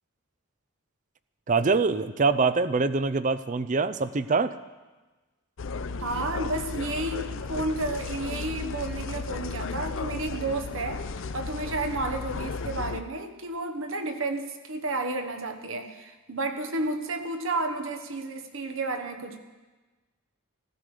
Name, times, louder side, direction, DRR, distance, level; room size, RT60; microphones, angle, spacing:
voice 1, 1.5-4.5, right 4 dB, 35° right, 14 dB, 0.4 m, -24 dB
sound 1, 5.6-13.0, left 4 dB, 55° left, 0.5 m, -34 dB
voice 2, 6.0-11.0 11.3-19.4, right 2 dB, 60° right, 7 dB, 1.2 m, -31 dB
15.0 x 14.0 x 4.9 m, 1.2 s
head